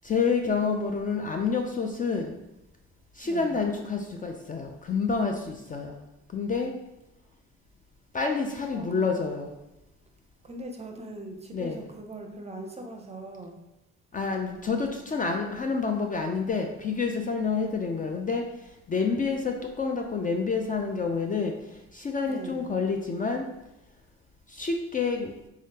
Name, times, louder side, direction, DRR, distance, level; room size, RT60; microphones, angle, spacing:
voice 1, 0.0-2.4 3.2-6.0 6.3-6.7 8.1-9.5 11.5-11.8 14.1-18.4 18.9-21.5 21.9-23.4 24.6-25.3, left 4 dB, 30° left, 3 dB, 0.4 m, -28 dB
voice 2, 3.2-3.5 8.7-9.1 10.4-13.6 22.3-22.6, right 1 dB, 20° right, 3 dB, 0.5 m, -40 dB
3.6 x 3.4 x 2.8 m, 0.93 s
cardioid pair, 90°, 30 cm